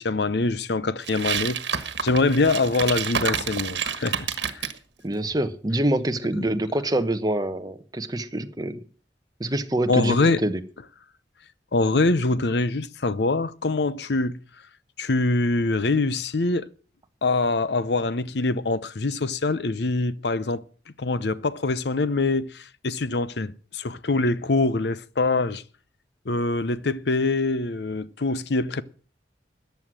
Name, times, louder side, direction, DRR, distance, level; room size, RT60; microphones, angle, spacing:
voice 1, 0.0-1.6 2.0-4.6 6.4-6.5 9.9-10.4 11.7-14.4 15.0-16.7 17.2-20.6 21.0-25.6 26.3-28.8, left 3 dB, 70° left, 0.7 m, -24 dB
sound 1, 1.0-4.8, right 7 dB, 85° right, 1.4 m, -28 dB
voice 2, 5.0-8.8 9.4-10.2 10.4-10.6, right 1 dB, 20° right, 1.0 m, -25 dB
14.0 x 9.3 x 6.2 m
head